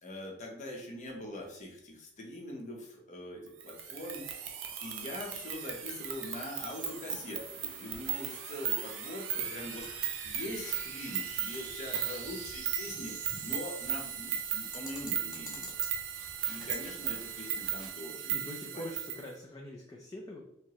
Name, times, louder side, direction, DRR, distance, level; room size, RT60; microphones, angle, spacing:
voice 1, 0.0-4.6 4.8-9.9 10.2-15.7 16.5-18.5 18.7-18.9, left 1 dB, 40° left, 0 dB, 0.8 m, -43 dB
sound 1, 3.0-15.6, right 3 dB, 45° right, 0.8 m, -49 dB
sound 2, 3.6-19.2, right 9 dB, 85° right, 0.5 m, -37 dB
voice 2, 9.3-9.7 11.9-12.2 18.3-20.4, left 1 dB, 20° left, -2 dB, 0.4 m, -44 dB
sound 3, 9.6-17.9, equal, 5° right, 0.9 m, -50 dB
4.7 x 2.2 x 2.8 m, 0.75 s
head